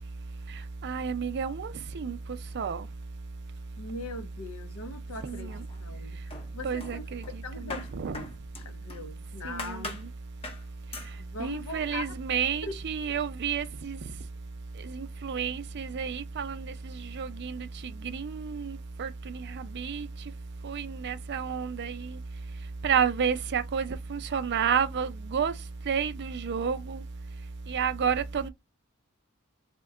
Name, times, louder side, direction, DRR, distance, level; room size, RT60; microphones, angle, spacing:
voice 1, 0.8-2.2 2.6-2.8 5.2-5.6 6.6-7.2 7.9-8.2 9.5-9.9 11.4-14.0 14.9-16.7 17.2-17.6 18.0-19.1 19.8-20.1 20.6-22.0 22.8-25.5 25.9-27.0 27.7-28.5, right 7 dB, 50° right, 0.4 m, -30 dB
voice 2, 3.8-7.1 7.4-7.9 8.6-10.0 11.2-12.1 12.6-12.7 13.1-13.2, left 2 dB, 80° left, 0.7 m, -41 dB
sound 1, 5.2-6.0 6.3-9.1 9.6-10.1 10.4-10.7 10.9-11.2, left 2 dB, 25° left, 0.7 m, -42 dB
2.8 x 2.2 x 3.5 m
head